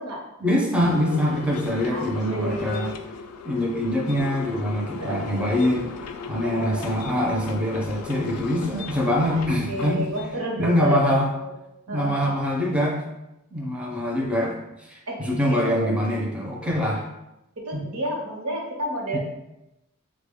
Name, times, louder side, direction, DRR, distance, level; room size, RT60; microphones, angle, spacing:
voice 1, 0.4-2.9 3.5-5.9 6.3-10.1 10.5-11.2 11.9-13.0 13.5-17.0 17.7-17.8 19.1-19.2, equal, 5° right, -2 dB, 0.4 m, -24 dB
sound 1, 0.9-10.4, left 5 dB, 85° left, 0.3 m, -36 dB
voice 2, 1.9-2.9 5.0-5.3 6.4-6.8 9.3-9.4 9.7-11.5 11.9-12.5 15.1-15.2 15.6-15.9 17.6-19.2, right 1 dB, 85° right, 0 dB, 0.8 m, -30 dB
3.3 x 2.1 x 3.5 m, 0.91 s
head